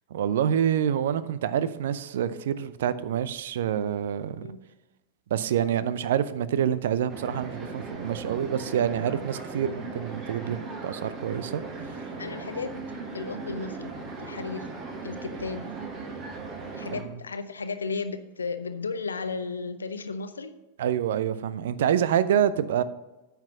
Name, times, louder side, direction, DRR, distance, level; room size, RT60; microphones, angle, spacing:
voice 1, 0.1-4.5 5.3-10.6 10.8-11.6 20.8-22.8, right 9 dB, 60° right, 15 dB, 0.5 m, -26 dB
sound 1, 7.1-17.0, right 4 dB, 30° right, 1.8 m, -38 dB
voice 2, 12.2-12.8 13.1-13.9 14.2-14.7 15.0-15.7 16.7-20.6, left 4 dB, 75° left, 11 dB, 0.7 m, -34 dB
8.9 x 5.8 x 6.0 m, 1.1 s
figure-of-eight pair, 90°, 0 cm